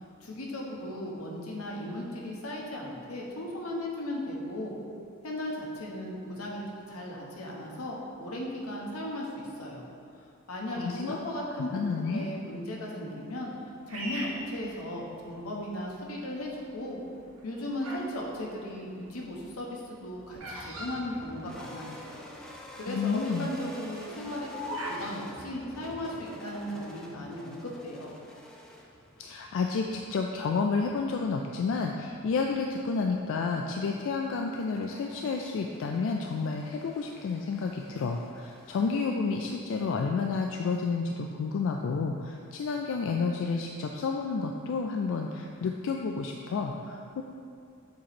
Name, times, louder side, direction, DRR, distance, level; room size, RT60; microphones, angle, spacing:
voice 1, 0.2-4.7 5.2-9.8 10.5-11.7 12.0-13.5 13.9-17.0 17.4-22.0 22.7-28.1, left 1 dB, 90° left, -2 dB, 1.0 m, -36 dB
voice 2, 10.8-11.2 11.7-12.3 22.9-23.5 29.2-47.2, left 4 dB, 65° left, 2 dB, 0.3 m, -30 dB
Bird vocalization bird call bird song, 13.9-15.4 16.0-16.5 17.2-18.1 18.4-21.9 22.2-22.3 22.4-22.8 23.2-25.1, equal, 75° right, 1.0 m, -39 dB
sound 1, 20.4-39.6, left 1 dB, 5° left, 0.5 m, -50 dB
7.4 x 3.0 x 4.2 m, 2.4 s
head